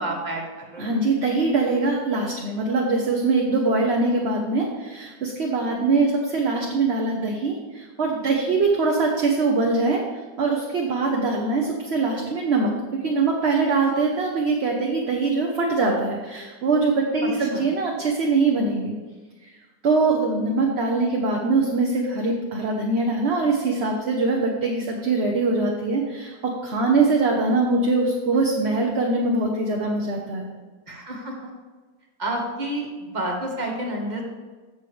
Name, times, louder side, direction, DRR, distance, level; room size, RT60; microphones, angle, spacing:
voice 1, 0.0-0.9 17.2-17.6 30.9-31.5 32.2-34.2, right 1 dB, 25° right, -1 dB, 1.7 m, -30 dB
voice 2, 0.8-10.0 10.4-18.9 19.8-30.4, right 3 dB, 45° right, 0 dB, 1.1 m, -22 dB
14.5 x 6.3 x 3.4 m, 1.3 s
omnidirectional pair, 1.9 m